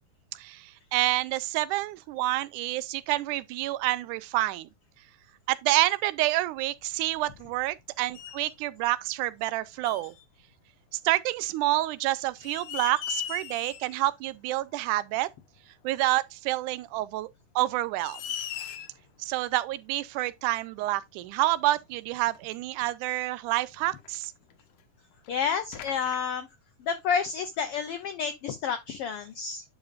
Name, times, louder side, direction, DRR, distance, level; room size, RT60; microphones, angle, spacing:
voice 1, 0.4-4.7 5.5-10.1 10.9-15.3 15.8-17.3 17.6-18.2 19.2-24.3, right 16 dB, 85° right, 2.1 m, -28 dB
sound 1, 6.9-7.8 8.1-8.6 9.8-10.2 11.6-11.7 12.2-14.0 14.3-14.4 16.0-16.1 17.1-17.2 17.7-17.8 18.0-19.1 20.3-20.4 21.2-21.3 21.6-21.7 22.3-22.5 23.9-24.8 25.2-25.3 25.7-26.2, left 10 dB, 70° left, 1.8 m, -39 dB
voice 2, 25.3-26.5 26.8-29.6, left 6 dB, 85° left, 1.3 m, -30 dB
10.5 x 5.1 x 2.5 m
omnidirectional pair, 3.5 m